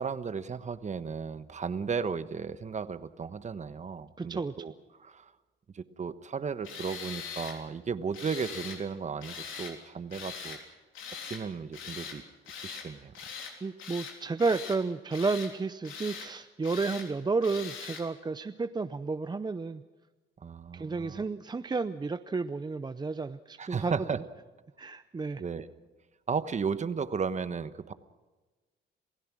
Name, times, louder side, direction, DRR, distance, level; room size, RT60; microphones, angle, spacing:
voice 1, 0.0-4.7 5.0-5.3 5.7-10.6 11.3-12.2 12.5-13.2 20.4-21.2 23.6-24.2 25.4-25.7 26.3-27.9, right 5 dB, 35° right, 12 dB, 1.1 m, -35 dB
voice 2, 4.2-4.5 13.4-19.8 20.7-23.9 24.8-25.4, right 4 dB, 20° right, 10 dB, 0.6 m, -32 dB
Tools, 6.6-7.6 8.1-8.8 9.2-9.7 10.1-10.6 10.9-11.4 11.7-12.2 12.5-12.9 13.2-13.5 13.8-14.8 15.1-15.5 15.8-16.3 16.6-17.1 17.4-18.0, left 6 dB, 85° left, 3.5 m, -41 dB
28.0 x 16.0 x 6.2 m, 1.2 s
cardioid pair, 90°, 20 cm